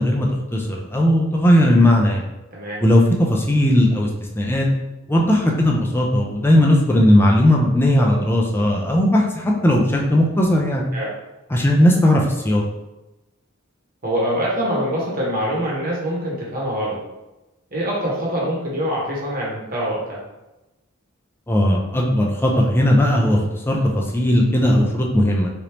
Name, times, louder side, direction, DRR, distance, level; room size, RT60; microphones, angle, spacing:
voice 1, 0.0-2.2 2.8-4.1 4.4-4.7 5.1-10.9 11.5-12.6 21.5-23.4 23.7-25.5, left 1 dB, 10° left, -1 dB, 0.5 m, -17 dB
voice 2, 2.5-2.8 10.9-11.1 14.0-17.0 17.7-20.2, equal, 45° right, -5 dB, 1.2 m, -24 dB
3.3 x 2.6 x 2.9 m, 0.99 s
head